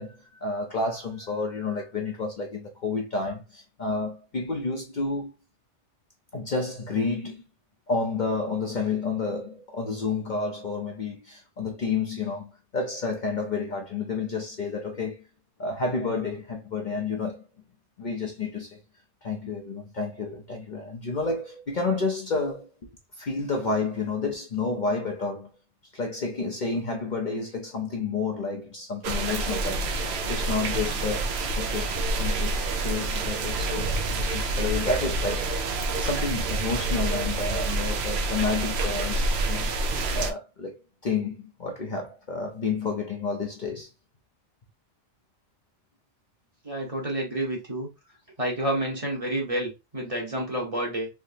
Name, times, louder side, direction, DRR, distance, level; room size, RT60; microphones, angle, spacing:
voice 1, 0.0-5.3 6.3-7.4 7.9-15.2 15.6-17.4 18.0-18.8 19.2-22.9 23.2-25.5 25.9-35.5 35.7-40.8 41.0-43.9, left 4 dB, 45° left, 0.7 m, -30 dB
sound 1, 29.0-40.3, right 2 dB, 70° right, 0.8 m, -27 dB
voice 2, 46.6-47.9 48.4-51.1, right 1 dB, 30° right, 1.0 m, -29 dB
3.4 x 2.9 x 2.7 m
omnidirectional pair, 1.2 m